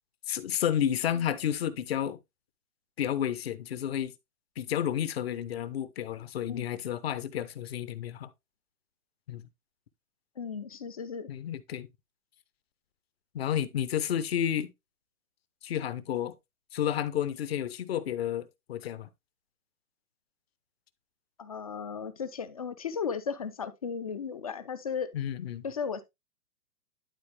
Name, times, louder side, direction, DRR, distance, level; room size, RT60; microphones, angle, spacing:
voice 1, 0.3-2.2 3.0-4.1 4.6-8.3 9.3-9.5 11.3-11.9 13.3-14.7 15.6-16.4 16.7-19.1 25.1-25.6, left 10 dB, 40° left, 0.9 m, -31 dB
voice 2, 10.4-11.3 21.4-25.1 25.6-26.0, left 6 dB, 25° left, 0.5 m, -35 dB
11.5 x 4.1 x 3.3 m
hypercardioid pair, 155°, 45 cm